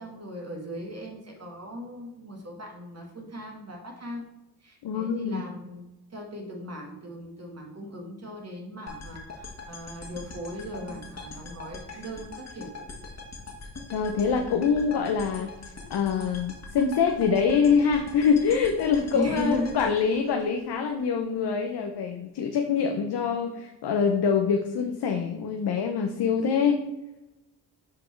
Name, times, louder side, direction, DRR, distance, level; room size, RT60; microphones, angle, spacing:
voice 1, 0.0-4.2 4.6-12.7 19.1-19.8, equal, 35° right, 0 dB, 1.8 m, -37 dB
voice 2, 4.8-5.4 13.9-15.5 15.9-26.8, left 6 dB, 60° left, 5 dB, 0.9 m, -25 dB
sound 1, 8.9-21.0, left 3 dB, 35° left, 1.8 m, -42 dB
6.3 x 4.7 x 4.5 m, 0.99 s
supercardioid pair, 50°, 45 cm